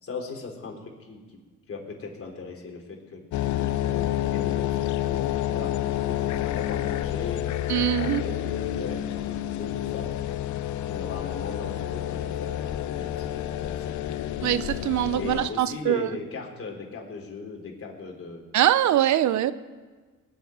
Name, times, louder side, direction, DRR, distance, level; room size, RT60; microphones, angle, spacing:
voice 1, 0.0-1.4 1.7-7.5 8.0-10.1 10.9-14.0 15.1-18.4, left 4 dB, 45° left, 1 dB, 3.7 m, -38 dB
sound 1, 3.3-15.5, left 12 dB, 70° left, 0.7 m, -29 dB
voice 2, 7.7-8.2 14.4-16.1 18.5-19.5, right 12 dB, 70° right, 15 dB, 0.7 m, -23 dB
19.0 x 7.0 x 9.2 m, 1.4 s
cardioid pair, 90°, 30 cm